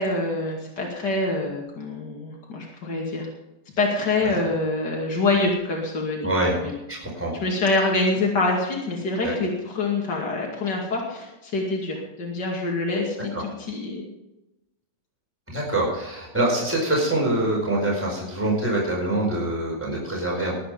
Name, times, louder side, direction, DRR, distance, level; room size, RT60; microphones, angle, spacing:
voice 1, 0.0-3.3 3.8-6.3 6.6-6.7 7.4-14.0, left 2 dB, 80° left, -1 dB, 3.0 m, -25 dB
voice 2, 6.2-6.6 6.9-7.3 9.2-9.3 13.3-13.4 15.5-20.6, right 1 dB, 5° right, -3 dB, 4.8 m, -25 dB
21.0 x 9.1 x 5.1 m, 0.96 s
omnidirectional pair, 1.8 m